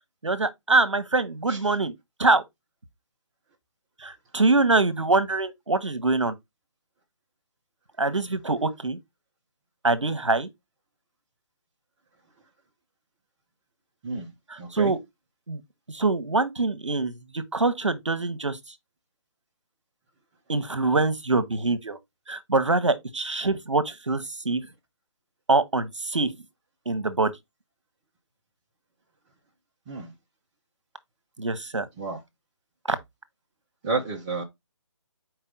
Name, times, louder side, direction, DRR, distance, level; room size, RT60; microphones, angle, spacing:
voice 1, 0.2-1.9 2.2-2.4 4.0-6.3 8.0-9.0 9.8-10.5 14.5-15.0 15.5-15.6 15.9-18.6 20.5-22.0 22.3-24.6 25.5-26.3 26.9-27.3 31.4-31.9 32.9-33.0, right 3 dB, 75° right, 1.1 m, -24 dB
voice 2, 14.6-14.9 29.9-30.1 32.0-32.2 33.8-34.4, right 3 dB, 20° right, 0.9 m, -30 dB
5.5 x 4.6 x 3.9 m
figure-of-eight pair, 145°, 16 cm